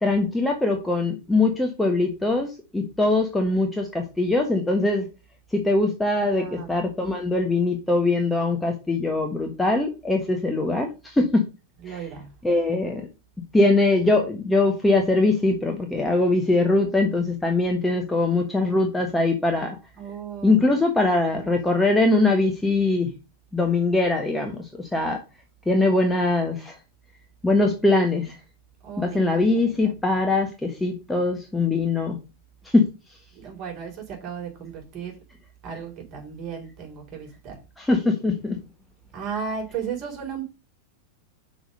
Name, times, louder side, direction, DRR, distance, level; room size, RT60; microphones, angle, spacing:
voice 1, 0.0-5.1 5.5-11.3 11.9-12.0 12.4-13.1 13.5-19.8 20.4-23.1 23.5-25.2 25.7-26.8 27.4-28.3 29.0-32.2 32.7-32.8 37.8-38.5, left 2 dB, 5° left, 2 dB, 1.3 m, -22 dB
voice 2, 6.2-6.8 11.8-12.3 20.0-20.7 28.8-30.2 33.3-35.1 35.6-37.6 39.1-40.4, right 6 dB, 30° right, 0 dB, 3.9 m, -35 dB
6.0 x 5.1 x 6.5 m, 0.29 s
figure-of-eight pair, 90°, 0 cm